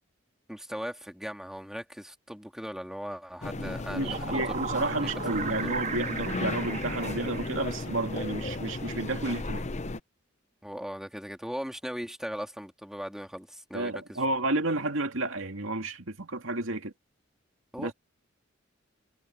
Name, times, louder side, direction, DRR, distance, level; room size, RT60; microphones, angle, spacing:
voice 1, 0.5-4.7 5.0-5.7 10.6-14.2 17.7-17.9, equal, 5° right, 2.5 m, -39 dB
restaurant room tone, 3.4-10.0, left 2 dB, 35° left, 0.8 m, -35 dB
voice 2, 3.6-9.6 13.7-16.9 17.8-17.9, right 2 dB, 75° right, 2.5 m, -31 dB
sound 1, 3.8-8.2, right 6 dB, 40° right, 2.5 m, -37 dB
head